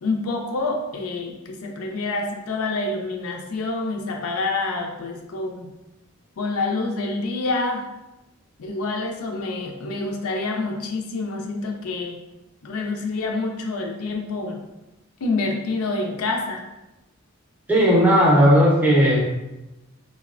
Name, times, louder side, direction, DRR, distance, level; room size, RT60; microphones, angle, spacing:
voice 1, 0.0-5.7 6.4-7.8 8.6-12.2 12.6-14.6 15.2-16.6, left 3 dB, 75° left, 2 dB, 0.4 m, -27 dB
voice 2, 17.7-19.2, equal, 5° right, -4 dB, 0.4 m, -15 dB
3.9 x 2.0 x 2.4 m, 0.99 s
head